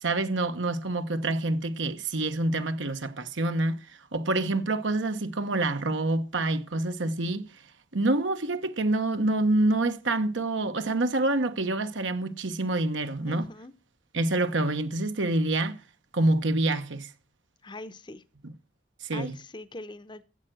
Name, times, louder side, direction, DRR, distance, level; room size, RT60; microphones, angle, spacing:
voice 1, 0.0-3.8 4.1-7.4 7.9-13.5 14.1-15.8 16.1-17.1 19.0-19.3, right 2 dB, 80° right, 1.2 m, -27 dB
voice 2, 13.3-13.7 17.6-18.2 19.1-20.2, left 2 dB, 25° left, 0.8 m, -42 dB
12.5 x 7.9 x 7.6 m
head